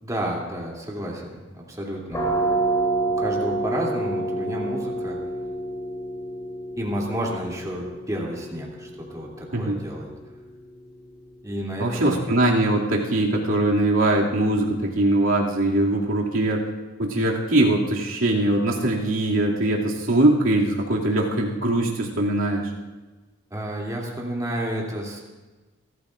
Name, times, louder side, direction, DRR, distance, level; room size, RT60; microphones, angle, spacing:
voice 1, 0.0-2.3 3.1-5.2 6.8-10.1 11.4-12.2 23.5-25.2, right 1 dB, 15° right, -3 dB, 2.8 m, -31 dB
sound 1, 2.1-13.6, right 2 dB, 20° left, 3.1 m, -30 dB
voice 2, 9.5-9.8 11.8-16.6 17.0-22.7, right 1 dB, 90° right, -3 dB, 2.4 m, -21 dB
29.0 x 14.0 x 2.5 m, 1.2 s
head